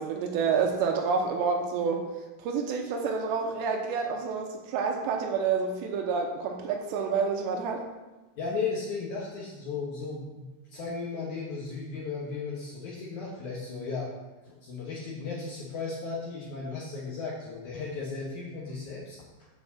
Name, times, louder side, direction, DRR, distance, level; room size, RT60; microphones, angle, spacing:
voice 1, 0.0-2.0 2.4-7.8, right 5 dB, 80° right, 2 dB, 2.9 m, -28 dB
voice 2, 8.4-14.1 14.4-19.5, left 4 dB, 80° left, -4 dB, 1.7 m, -35 dB
8.1 x 4.7 x 7.0 m, 1.1 s
omnidirectional pair, 5.3 m